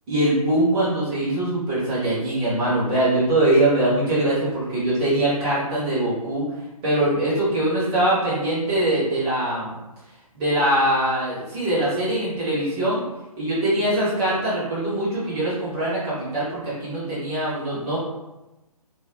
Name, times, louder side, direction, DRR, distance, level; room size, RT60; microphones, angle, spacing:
voice 1, 0.1-6.4 6.8-9.7 10.3-13.0 13.4-18.0, right 1 dB, 5° right, -10 dB, 0.4 m, -22 dB
2.1 x 2.0 x 2.9 m, 1.0 s
figure-of-eight pair, 140°, 19 cm